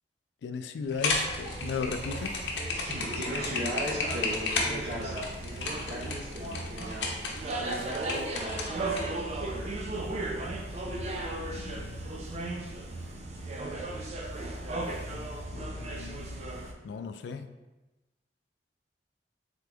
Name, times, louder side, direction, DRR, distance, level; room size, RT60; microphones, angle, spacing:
voice 1, 0.4-2.4 10.8-11.1 11.5-12.1 15.1-16.5 16.8-17.5, left 5 dB, 75° left, 10 dB, 0.3 m, -37 dB
sound 1, 0.9-9.0, left 3 dB, 90° left, 0.8 m, -32 dB
sound 2, 1.2-16.7, right 2 dB, 40° right, 0.5 m, -36 dB
voice 2, 2.9-9.5, equal, 60° right, -8 dB, 0.9 m, -38 dB
3.7 x 3.4 x 3.4 m, 1.1 s
head